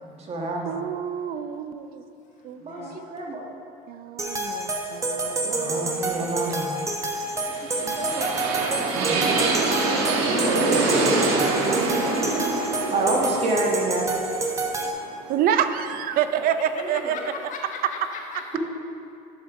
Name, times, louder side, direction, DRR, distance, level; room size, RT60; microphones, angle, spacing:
voice 1, 0.0-0.8 2.6-3.4 5.4-6.8 7.6-7.7 8.0-8.3 8.9-9.2 12.9-14.1 16.8-17.2, right 2 dB, 35° right, -1 dB, 1.4 m, -28 dB
voice 2, 0.6-2.0 2.4-3.0 3.9-6.6 7.8-8.0 9.1-9.6 10.2-10.4 12.3-13.2 15.3-17.2, right 9 dB, 50° right, 10 dB, 0.5 m, -29 dB
voice 3, 2.6-3.0 4.3-4.4 7.8-8.2 16.6-18.6, left 4 dB, 40° left, 0 dB, 1.3 m, -38 dB
sound 1, 4.2-14.9, right 2 dB, 15° right, 0.8 m, -28 dB
sound 2, 7.3-15.3, right 3 dB, 90° right, 1.3 m, -25 dB
10.5 x 6.5 x 3.6 m, 2.7 s
cardioid pair, 125°, 19 cm